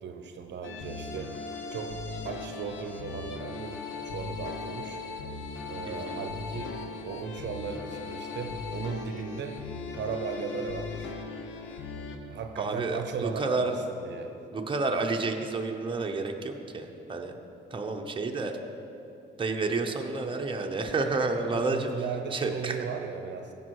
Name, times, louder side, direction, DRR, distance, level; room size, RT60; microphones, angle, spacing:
voice 1, 0.0-1.4 1.7-5.0 5.7-6.8 7.0-9.6 9.9-11.2 12.3-14.3 21.5-23.5, right 6 dB, 65° right, 6 dB, 0.8 m, -36 dB
sound 1, 0.6-12.2, left 4 dB, 80° left, 0.9 m, -38 dB
voice 2, 5.9-6.3 12.6-13.7 14.5-17.3 17.7-18.6 19.4-21.9 22.3-22.8, right 3 dB, 25° right, 2 dB, 0.9 m, -30 dB
16.0 x 5.4 x 4.8 m, 2.8 s
cardioid pair, 90°, 20 cm